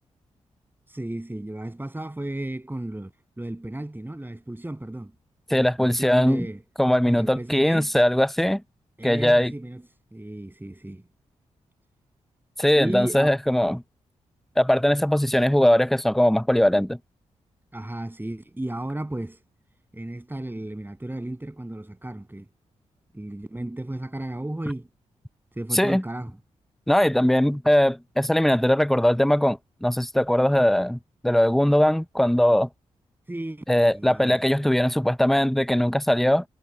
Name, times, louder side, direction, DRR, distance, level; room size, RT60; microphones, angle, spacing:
voice 1, 0.9-5.1 5.5-6.6 7.0-7.9 9.0-9.8 10.1-11.0 12.8-13.3 17.7-19.4 19.9-22.5 23.1-24.9 25.5-26.4 33.3-33.6 33.9-34.4, right 1 dB, 15° right, 8.0 m, -34 dB
voice 2, 5.5-6.5 6.8-8.6 9.0-9.5 12.6-13.8 14.6-17.0 25.7-26.0 26.9-32.7 33.7-36.4, left 1 dB, ahead, 0.5 m, -20 dB
supercardioid pair, 45°, 13 cm